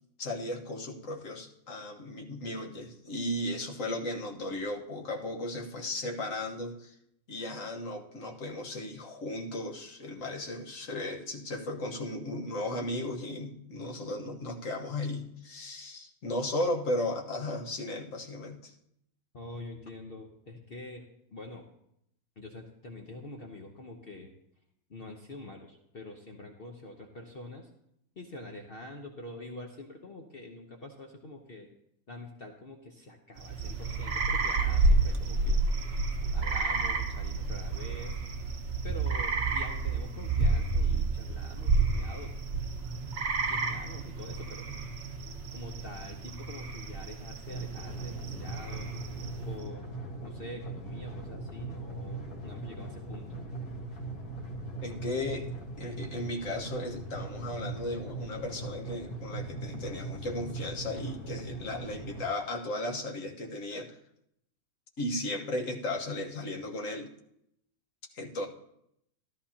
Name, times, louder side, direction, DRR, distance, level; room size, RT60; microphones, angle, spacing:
voice 1, 0.2-6.9 7.3-18.7 54.8-55.5 55.8-64.0 65.0-67.1 68.1-68.5, left 1 dB, 60° left, 2 dB, 1.6 m, -35 dB
voice 2, 19.3-21.0 21.3-21.6 22.4-24.3 24.9-27.7 28.2-31.7 32.1-35.6 36.2-38.2 38.8-42.3 43.5-44.7 45.5-48.9 49.5-49.9 50.2-53.3, left 2 dB, 45° left, 2 dB, 1.0 m, -46 dB
sound 1, 33.4-49.6, right 3 dB, 50° right, 1.2 m, -30 dB
sound 2, 47.5-62.2, right 2 dB, 75° left, 2.2 m, -40 dB
13.5 x 13.0 x 2.9 m, 0.76 s
omnidirectional pair, 1.6 m